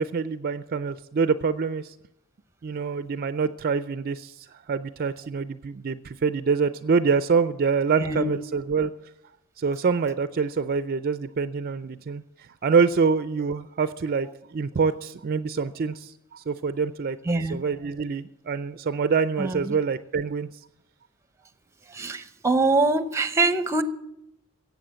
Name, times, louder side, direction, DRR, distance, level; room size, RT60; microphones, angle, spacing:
voice 1, 0.0-1.9 2.6-8.9 9.6-12.2 12.6-17.2 17.5-20.5, right 5 dB, 45° right, 13 dB, 0.4 m, -25 dB
voice 2, 8.0-8.4 17.3-17.6 19.4-19.6 21.9-23.8, right 3 dB, 15° right, 11 dB, 0.8 m, -23 dB
16.0 x 8.1 x 7.5 m, 0.85 s
head